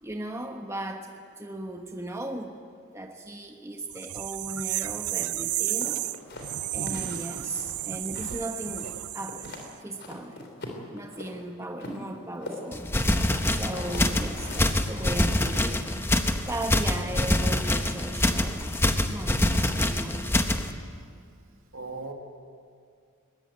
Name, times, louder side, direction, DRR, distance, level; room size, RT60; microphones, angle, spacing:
voice 1, 0.0-1.1 1.4-2.6 2.9-6.0 6.7-9.5 9.8-10.4 10.9-12.9 13.5-18.8 19.1-20.3, right 1 dB, 15° right, 3 dB, 1.2 m, -37 dB
sound 1, 3.9-9.7, right 15 dB, 85° right, 0.5 m, -32 dB
sound 2, 5.8-8.5 8.8-9.7 10.0-11.4 11.8-15.6, left 2 dB, 50° left, 3.7 m, -42 dB
sound 3, 12.7-20.7, left 1 dB, 10° left, 1.0 m, -25 dB
voice 2, 19.3-19.7 20.9-21.1 21.5-22.1, right 3 dB, 65° right, 3 dB, 2.6 m, -41 dB
21.5 x 20.0 x 8.6 m, 2.2 s
head